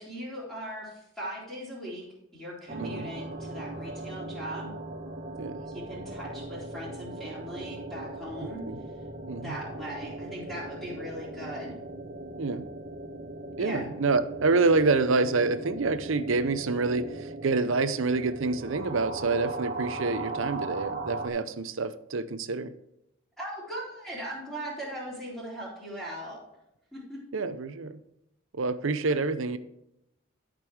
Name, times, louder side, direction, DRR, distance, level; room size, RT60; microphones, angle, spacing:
voice 1, 0.0-2.1 2.3-4.7 5.7-8.7 9.4-11.7 13.6-13.9 23.4-26.4 26.9-27.2 29.0-29.2, right 1 dB, ahead, -10 dB, 3.0 m, -39 dB
sound 1, 2.7-21.3, right 2 dB, 45° right, 1.0 m, -39 dB
voice 2, 8.4-8.8 9.3-9.6 12.4-12.6 13.6-22.7 27.3-28.0 28.5-29.6, right 3 dB, 75° right, 13 dB, 0.6 m, -27 dB
12.0 x 5.2 x 4.6 m, 0.84 s
head